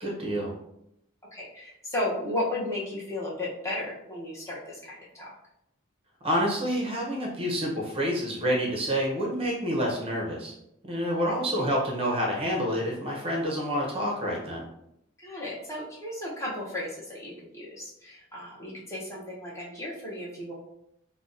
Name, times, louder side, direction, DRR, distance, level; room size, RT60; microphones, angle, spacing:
voice 1, 0.0-0.5 6.2-10.5 10.8-14.7, equal, 30° right, -2 dB, 0.6 m, -28 dB
voice 2, 1.3-5.3 11.3-11.4 15.2-20.5, left 1 dB, 15° left, -5 dB, 0.6 m, -34 dB
2.5 x 2.1 x 3.7 m, 0.78 s
head